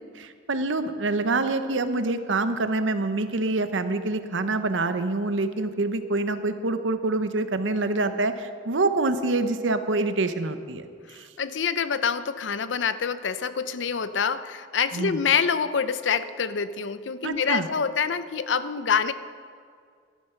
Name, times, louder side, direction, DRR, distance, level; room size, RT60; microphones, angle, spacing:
voice 1, 0.1-10.9 11.2-11.3 14.9-15.2 17.2-17.7, right 2 dB, 85° right, 10 dB, 0.9 m, -26 dB
voice 2, 11.4-19.1, left 6 dB, 75° left, 13 dB, 0.6 m, -26 dB
13.5 x 11.5 x 5.8 m, 2.1 s
head